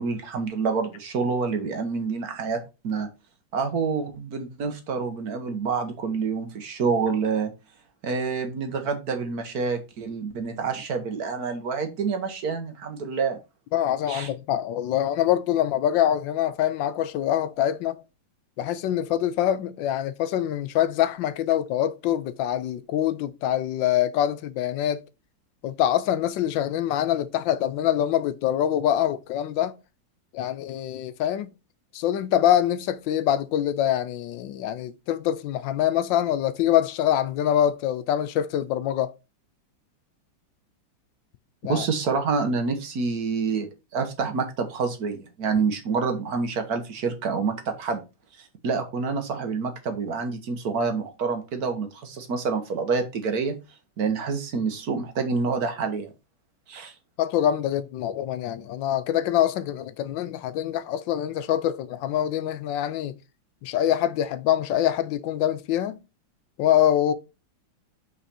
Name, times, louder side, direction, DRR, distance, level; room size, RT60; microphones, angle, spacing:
voice 1, 0.0-2.6 2.8-3.1 3.5-7.5 8.0-13.4 14.1-14.3 41.7-48.0 48.6-53.5 54.0-56.1 56.7-56.9, right 5 dB, 55° right, 1.4 m, -27 dB
voice 2, 13.7-18.0 18.6-25.0 25.6-29.7 30.3-31.5 31.9-39.1 41.6-41.9 57.2-63.2 63.6-66.0 66.6-67.1, left 11 dB, 80° left, 1.3 m, -24 dB
5.6 x 4.2 x 4.2 m
omnidirectional pair, 2.0 m